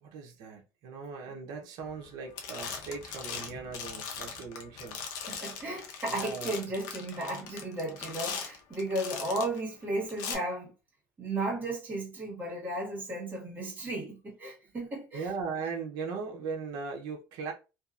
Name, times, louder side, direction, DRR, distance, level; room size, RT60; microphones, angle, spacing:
voice 1, 0.0-5.0 6.1-6.5 15.1-17.5, right 5 dB, 70° right, 0.7 m, -38 dB
sound 1, 1.9-2.1 2.4-9.6 10.1-10.3, left 6 dB, 65° left, 0.6 m, -40 dB
voice 2, 5.3-10.7 11.2-15.3, right 1 dB, 25° right, 1.5 m, -34 dB
2.7 x 2.3 x 2.4 m
cardioid pair, 135°, 7 cm